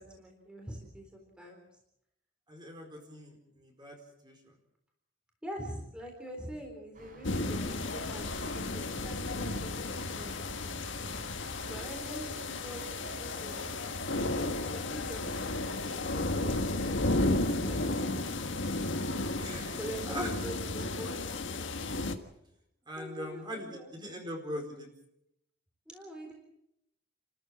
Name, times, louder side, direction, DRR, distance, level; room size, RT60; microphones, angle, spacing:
voice 1, 0.0-1.7 5.4-10.3 11.7-13.6 14.7-18.3 18.9-21.2 23.0-23.9 25.9-26.3, equal, 5° right, 1 dB, 4.0 m, -45 dB
voice 2, 2.5-4.5 19.4-20.3 22.9-24.9, equal, 25° right, 2 dB, 4.4 m, -41 dB
sound 1, 6.9-20.4, right 2 dB, 45° right, 5.6 m, -52 dB
sound 2, 7.2-22.2, left 2 dB, 70° left, 1.7 m, -33 dB
29.5 x 14.0 x 7.4 m, 0.79 s
head